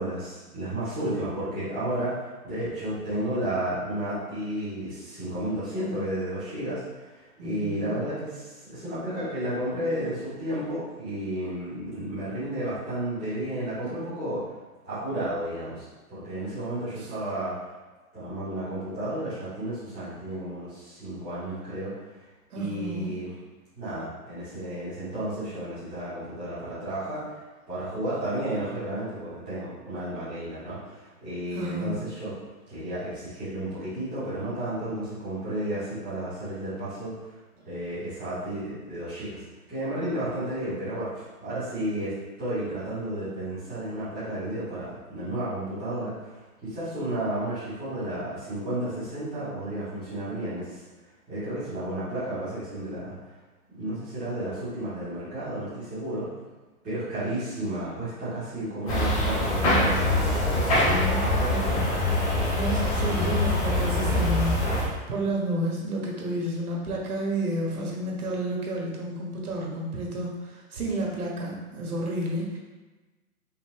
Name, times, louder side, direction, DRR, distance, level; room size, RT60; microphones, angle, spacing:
voice 1, 0.0-14.4 14.8-17.5 18.1-22.0 22.5-23.3 23.7-27.4 27.7-32.3 32.7-37.1 37.6-39.4 39.7-42.1 42.4-50.8 51.3-53.1 53.7-56.3 56.8-61.6, right 1 dB, ahead, -27 dB, 0.5 m, -32 dB
voice 2, 7.4-8.0 17.0-17.1 22.5-23.2 31.5-32.0 60.8-61.8 62.2-72.6, right 1 dB, 75° right, -1 dB, 1.4 m, -31 dB
sound 1, 58.9-64.8, left 1 dB, 25° left, 1.0 m, -24 dB
5.5 x 2.7 x 3.0 m, 1.2 s
hypercardioid pair, 160°, 45 cm